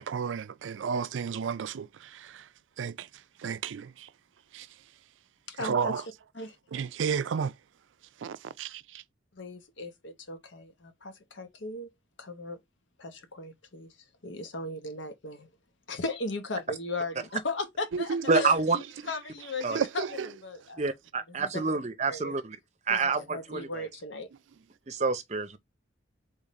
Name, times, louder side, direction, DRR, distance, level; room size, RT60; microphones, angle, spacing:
voice 1, 0.0-2.5 2.8-4.1 4.5-4.8 5.5-6.1 6.7-7.6 8.2-9.0 17.9-18.5 19.6-20.3, right 6 dB, 85° right, 0.4 m, -32 dB
voice 2, 5.5-5.9 6.3-6.6 9.3-11.9 12.2-12.6 13.0-13.9 14.2-15.5 15.9-20.0 20.4-20.9 21.3-21.8 22.1-22.3 22.9-24.3, left 2 dB, 75° left, 1.0 m, -37 dB
voice 3, 18.3-18.8 19.6-19.8 20.8-22.6 22.9-23.9 24.9-25.6, right 4 dB, 35° right, 0.6 m, -28 dB
3.6 x 3.6 x 4.2 m
head